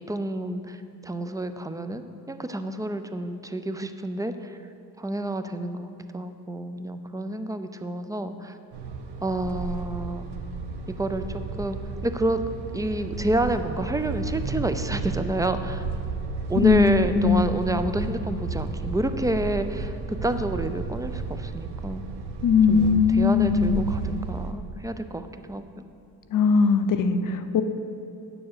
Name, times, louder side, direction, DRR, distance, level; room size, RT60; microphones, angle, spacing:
voice 1, 0.0-4.6 5.0-5.9 6.1-8.6 9.2-10.3 10.9-12.4 12.7-15.8 16.5-22.0 22.7-25.8, right 1 dB, 10° right, 9 dB, 0.4 m, -29 dB
sound 1, 8.7-24.5, right 4 dB, 85° right, 0.9 m, -33 dB
voice 2, 16.6-17.5 22.4-23.8 26.3-27.6, left 6 dB, 55° left, 9 dB, 0.7 m, -20 dB
8.6 x 7.0 x 6.7 m, 2.7 s
cardioid pair, 105°, 39 cm